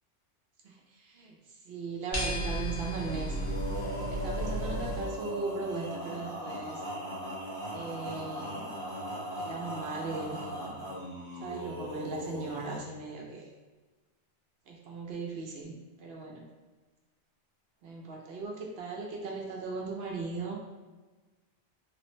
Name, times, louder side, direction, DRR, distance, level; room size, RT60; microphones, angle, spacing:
voice 1, 0.6-1.4 1.6-3.4 3.7-3.8 4.1-6.8 7.7-8.8 9.4-10.9 11.4-13.5 14.7-16.5 17.8-20.6, right 4 dB, 65° right, 0 dB, 0.7 m, -38 dB
sound 1, 2.1-5.0, right 1 dB, 55° left, 1.0 m, -33 dB
Male singing, 3.0-12.8, equal, 25° right, 0.8 m, -39 dB
3.2 x 2.0 x 3.0 m, 1.3 s
omnidirectional pair, 1.2 m